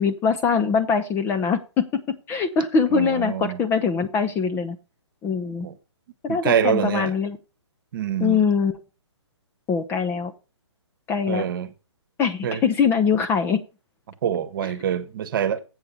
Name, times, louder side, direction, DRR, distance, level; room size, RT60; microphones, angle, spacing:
voice 1, 0.0-1.8 2.3-4.8 5.2-5.7 6.2-7.4 8.2-8.8 9.7-10.3 11.1-11.5 12.2-13.6 14.6-14.7, left 6 dB, 15° left, 0.6 m, -22 dB
voice 2, 2.9-3.6 5.6-5.7 6.3-7.1 7.9-8.4 11.3-11.7 12.4-12.6 14.2-15.6, right 9 dB, 45° right, 1.2 m, -25 dB
7.9 x 6.7 x 5.7 m
figure-of-eight pair, 140°, 15 cm